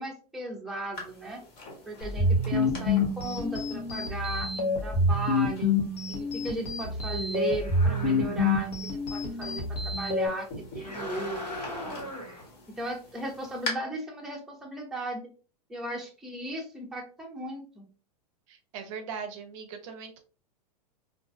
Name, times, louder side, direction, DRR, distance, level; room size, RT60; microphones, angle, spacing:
voice 1, 0.0-1.4 1.9-5.7 6.1-12.1 12.8-15.2 15.7-17.8, right 2 dB, ahead, -1 dB, 0.6 m, -36 dB
sound 1, 0.9-13.7, left 2 dB, 40° left, 1.1 m, -45 dB
sound 2, 2.0-10.3, left 2 dB, 70° left, 1.0 m, -27 dB
sound 3, 7.5-8.6 10.7-12.4, left 1 dB, 90° left, 1.3 m, -38 dB
voice 2, 18.5-20.2, right 6 dB, 50° right, 6 dB, 0.5 m, -39 dB
2.5 x 2.2 x 2.4 m, 0.37 s
hypercardioid pair, 105°, 21 cm